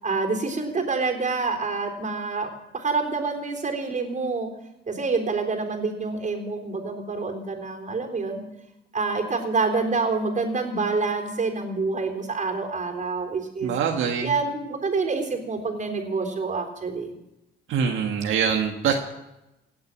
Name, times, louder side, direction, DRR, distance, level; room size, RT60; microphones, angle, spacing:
voice 1, 0.0-4.5 4.9-8.4 8.9-13.7 14.2-17.1, right 4 dB, 40° right, 2 dB, 3.7 m, -27 dB
voice 2, 13.6-14.3 17.7-18.9, right 7 dB, 80° right, 2 dB, 1.7 m, -24 dB
17.5 x 8.0 x 8.9 m, 0.92 s
cardioid pair, 90°, 20 cm